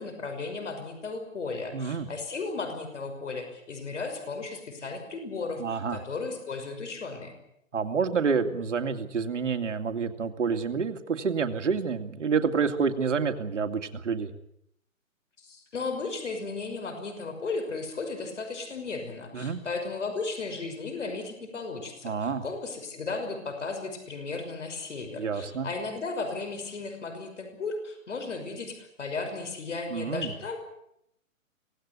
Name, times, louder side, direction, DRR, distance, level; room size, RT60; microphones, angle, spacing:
voice 1, 0.0-7.3 15.4-30.6, left 3 dB, 60° left, 6 dB, 5.7 m, -35 dB
voice 2, 1.7-2.1 5.6-6.0 7.7-14.3 19.3-19.6 22.0-22.4 25.1-25.7 29.9-30.3, right 5 dB, 60° right, 8 dB, 2.5 m, -28 dB
25.0 x 18.0 x 8.3 m, 0.75 s
hypercardioid pair, 180°, 41 cm